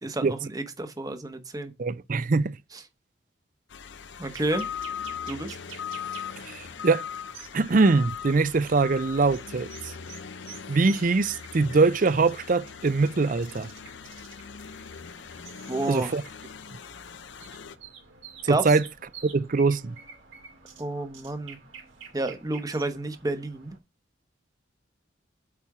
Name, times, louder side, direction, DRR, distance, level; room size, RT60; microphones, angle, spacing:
voice 1, 0.0-1.7 4.2-4.7 5.3-5.6 15.7-16.2 18.5-18.6 20.8-21.6 22.1-23.7, right 2 dB, 20° right, 0.9 m, -30 dB
voice 2, 1.8-2.6 6.5-7.0 7.5-9.9 10.7-13.7 15.9-16.2 18.4-18.8 19.3-20.0, right 3 dB, 45° right, 0.5 m, -23 dB
sound 1, 3.7-17.8, left 7 dB, 65° left, 0.5 m, -40 dB
sound 2, 4.2-23.8, right 6 dB, 85° right, 2.8 m, -49 dB
8.4 x 4.3 x 4.8 m
head